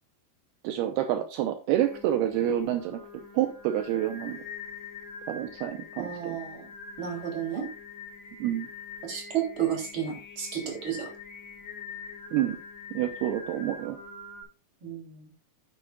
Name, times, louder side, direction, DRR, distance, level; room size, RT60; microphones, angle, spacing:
voice 1, 0.6-3.0 3.3-4.4 5.3-6.4 8.4-8.7 12.3-12.6 12.9-14.0, right 12 dB, 80° right, 7 dB, 2.6 m, -28 dB
Singing, 1.8-14.4, left 5 dB, 25° left, 5.4 m, -44 dB
voice 2, 6.0-6.7 7.0-7.7 9.0-11.1 14.8-15.3, right 9 dB, 30° right, 1 dB, 3.6 m, -32 dB
11.5 x 9.2 x 2.4 m, 0.33 s
omnidirectional pair, 4.8 m